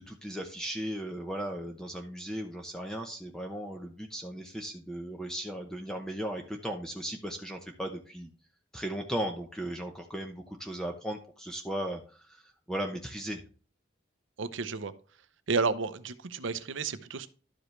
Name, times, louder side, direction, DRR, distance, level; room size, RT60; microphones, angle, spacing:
voice 1, 0.0-8.3 8.7-12.4 12.7-13.4, right 1 dB, 5° left, 3 dB, 0.8 m, -36 dB
voice 2, 14.4-14.9 15.5-17.3, right 4 dB, 85° right, 13 dB, 0.7 m, -31 dB
12.0 x 5.0 x 3.2 m, 0.38 s
head